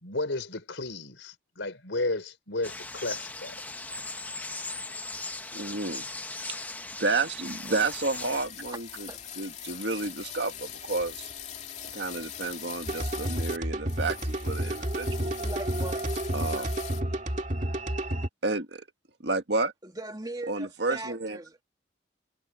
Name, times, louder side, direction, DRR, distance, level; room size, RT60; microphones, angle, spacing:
voice 1, 0.0-3.6, left 2 dB, 90° left, 4.4 m, -33 dB
sound 1, 2.6-8.5, left 2 dB, 10° left, 0.9 m, -38 dB
voice 2, 5.5-6.0 6.5-9.1 9.4-11.3 11.9-15.3 16.3-16.7 18.4-18.8 19.2-19.7 20.5-21.4, right 3 dB, 65° right, 1.9 m, -31 dB
sound 2, 7.4-13.6 13.9-17.0, left 9 dB, 40° left, 2.8 m, -42 dB
sound 3, 12.9-18.3, right 1 dB, 40° right, 2.3 m, -30 dB
voice 3, 15.4-16.0 19.8-21.6, right 2 dB, 20° right, 2.6 m, -40 dB
head